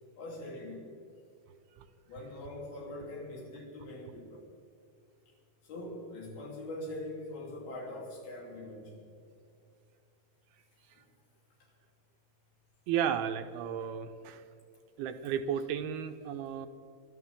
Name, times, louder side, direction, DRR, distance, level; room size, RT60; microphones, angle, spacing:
voice 1, 0.2-0.8 2.1-4.5 5.6-9.1 10.9-11.0, left 1 dB, 75° left, -3 dB, 5.2 m, -43 dB
voice 2, 12.9-14.4 15.0-16.7, right 8 dB, 85° right, 7 dB, 2.9 m, -33 dB
27.0 x 12.0 x 3.7 m, 2.5 s
omnidirectional pair, 4.5 m